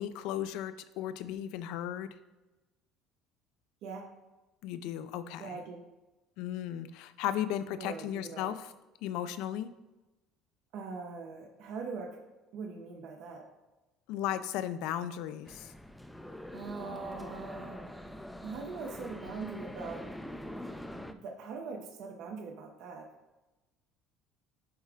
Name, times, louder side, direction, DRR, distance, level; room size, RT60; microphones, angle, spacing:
voice 1, 0.0-2.1 4.6-5.6 6.4-8.7 9.0-9.7 14.1-15.7, left 11 dB, 75° left, 13 dB, 0.4 m, -35 dB
voice 2, 5.4-5.8 7.8-8.5 10.7-12.2 12.5-13.4 16.5-17.9 18.4-20.0 21.1-23.1, right 4 dB, 65° right, 2 dB, 0.9 m, -42 dB
sound 1, 15.4-21.1, left 1 dB, 5° left, 0.4 m, -44 dB
8.6 x 3.5 x 3.6 m, 1.1 s
cardioid pair, 120°, 0 cm